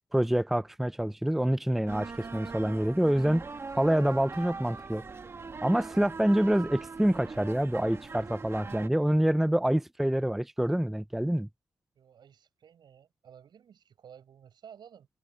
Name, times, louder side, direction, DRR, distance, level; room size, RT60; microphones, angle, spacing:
voice 1, 0.1-3.4 3.7-5.0 5.6-11.5, right 1 dB, 5° right, 0.5 m, -26 dB
sound 1, 1.9-8.9, right 4 dB, 35° right, 1.5 m, -41 dB
voice 2, 12.0-15.1, right 8 dB, 75° right, 7.2 m, -53 dB
wide cardioid pair, 135°, 8 cm